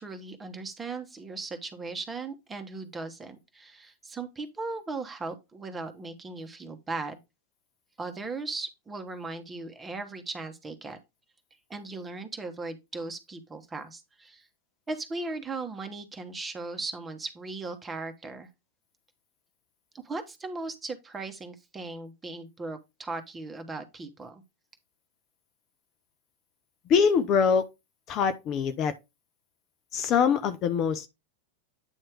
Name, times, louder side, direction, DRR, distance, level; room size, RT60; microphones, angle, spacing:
voice 1, 0.0-7.2 8.0-11.0 11.7-14.5 14.9-18.5 19.9-24.4, right 3 dB, 15° right, 1.2 m, -38 dB
voice 2, 26.9-27.6 28.1-28.9 29.9-31.1, left 6 dB, 35° left, 0.6 m, -23 dB
8.9 x 3.1 x 4.7 m
figure-of-eight pair, 90°, 0 cm